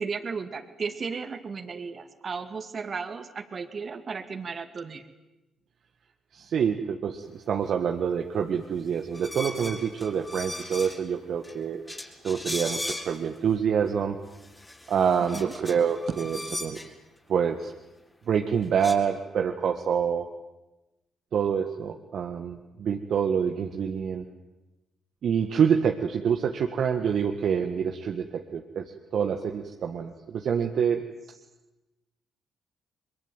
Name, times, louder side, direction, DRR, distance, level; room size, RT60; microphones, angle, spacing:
voice 1, 0.0-5.0 15.3-15.5, right 5 dB, 50° right, 8 dB, 2.4 m, -35 dB
voice 2, 6.3-11.8 12.2-14.2 14.9-16.8 17.3-17.7 18.3-20.3 21.3-24.2 25.2-31.0, right 7 dB, 65° right, 4 dB, 1.6 m, -26 dB
sound 1, 9.1-11.1 11.4-11.5 11.9-13.4 13.9-14.0 14.3-16.9 18.3-18.4 18.6-18.9, left 1 dB, 20° left, 5.4 m, -38 dB
22.5 x 22.5 x 9.3 m, 1.0 s
hypercardioid pair, 50°, 0 cm